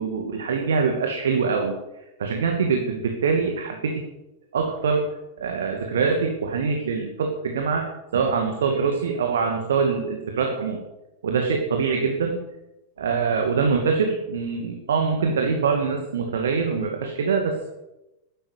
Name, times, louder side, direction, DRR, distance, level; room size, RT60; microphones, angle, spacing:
voice 1, 0.0-1.8 2.2-4.0 4.5-5.1 5.4-10.8 11.2-12.4 13.0-17.8, right 5 dB, 65° right, 2 dB, 2.4 m, -24 dB
12.5 x 11.5 x 9.6 m, 0.95 s
figure-of-eight pair, 90°, 0 cm